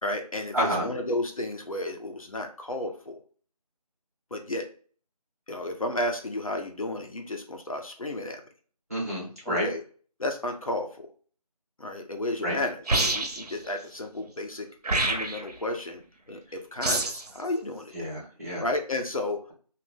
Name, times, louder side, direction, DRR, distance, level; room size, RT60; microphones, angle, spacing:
voice 1, 0.0-3.2 4.3-4.7 5.5-8.4 9.5-9.8 10.2-11.1 11.8-14.7 15.0-16.0 16.3-17.9 18.6-19.4, left 1 dB, 60° left, 3 dB, 0.5 m, -32 dB
voice 2, 0.5-0.9 8.9-9.7 12.4-12.6 17.9-18.6, equal, 25° right, -7 dB, 0.9 m, -29 dB
sound 1, 12.9-13.5 14.8-15.5 16.8-17.3, right 2 dB, 75° right, 0.7 m, -26 dB
2.7 x 2.1 x 3.4 m, 0.43 s
figure-of-eight pair, 180°, 20 cm